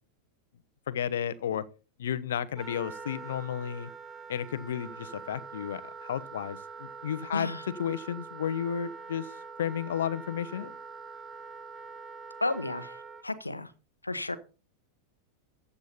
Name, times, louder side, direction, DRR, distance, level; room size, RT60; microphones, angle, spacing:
voice 1, 0.9-1.6 2.0-3.9 4.3-7.5 7.8-9.3 9.6-10.8, left 9 dB, 60° left, 1.0 m, -32 dB
Wind instrument woodwind instrument, 2.6-13.2, right 5 dB, 20° right, 1.6 m, -44 dB
voice 2, 7.3-7.7 12.4-13.7 14.0-14.4, left 2 dB, 85° left, 1.2 m, -33 dB
14.5 x 8.5 x 4.3 m
figure-of-eight pair, 90°, 0 cm